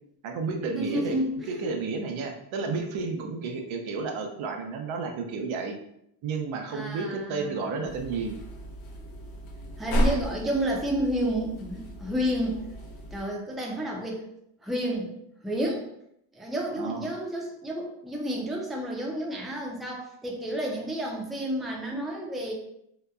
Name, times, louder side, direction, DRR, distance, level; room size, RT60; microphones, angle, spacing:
voice 1, 0.2-1.2 1.5-5.8 6.2-8.4 16.8-17.1, right 4 dB, 80° right, 3 dB, 0.6 m, -32 dB
voice 2, 0.7-1.6 6.7-7.9 9.8-12.6 13.1-14.2 14.6-15.1 15.4-15.9 16.3-22.5, equal, ahead, -2 dB, 0.4 m, -30 dB
sound 1, 7.8-13.2, right 1 dB, 80° left, 0.7 m, -33 dB
2.8 x 2.2 x 2.3 m, 0.76 s
cardioid pair, 85°, 48 cm